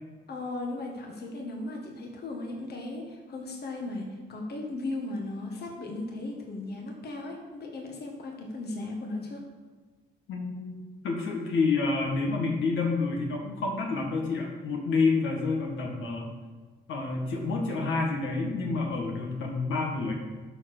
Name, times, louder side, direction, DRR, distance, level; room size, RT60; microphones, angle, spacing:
voice 1, 0.3-9.4, left 2 dB, 55° left, 0 dB, 1.8 m, -36 dB
voice 2, 10.3-10.8 11.0-16.3 16.9-20.1, left 3 dB, 80° left, 0 dB, 1.9 m, -28 dB
12.0 x 4.8 x 6.1 m, 1.3 s
cardioid pair, 90°, 20 cm